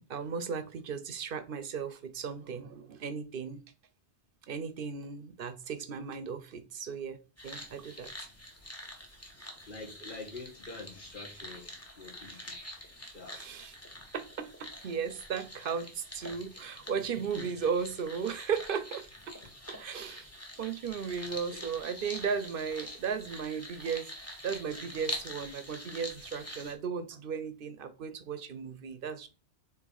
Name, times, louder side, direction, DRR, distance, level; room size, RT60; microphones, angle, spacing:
voice 1, 0.0-3.6 4.5-7.2 7.4-8.1 13.3-13.7 14.1-19.4 19.7-20.3 20.6-24.1 24.4-29.3, right 6 dB, 55° right, 0.9 m, -36 dB
sound 1, 7.4-26.7, left 1 dB, 15° left, 1.3 m, -45 dB
voice 2, 9.7-12.6 13.0-13.6 16.3-16.4 17.0-17.1 17.4-17.6 21.5-21.6, left 3 dB, 50° left, 1.7 m, -46 dB
7.6 x 3.1 x 4.0 m
omnidirectional pair, 1.1 m